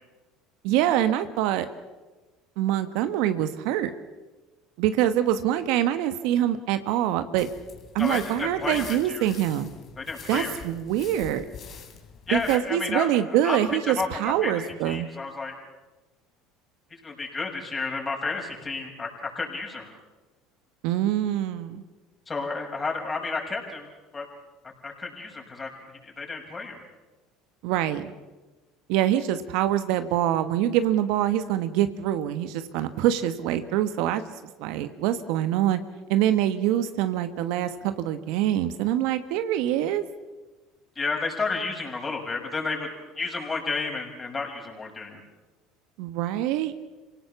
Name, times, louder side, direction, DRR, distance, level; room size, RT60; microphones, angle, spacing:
voice 1, 0.6-1.7 2.6-3.9 4.8-7.5 7.9-9.7 10.3-11.4 12.3-15.1 20.8-21.8 27.6-28.1 28.9-34.2 34.6-35.8 36.1-40.0 46.0-46.7, right 12 dB, 65° right, 11 dB, 1.2 m, -25 dB
sound 1, 7.4-12.6, left 7 dB, 45° left, 3.6 m, -45 dB
voice 2, 8.0-9.3 10.0-10.6 12.3-13.1 13.4-13.6 13.9-15.5 16.9-19.9 22.3-23.9 24.1-24.3 24.8-26.8 40.9-42.9 43.1-45.2, left 4 dB, 25° left, 1 dB, 6.4 m, -31 dB
26.5 x 17.5 x 7.2 m, 1.2 s
hypercardioid pair, 75°, 0 cm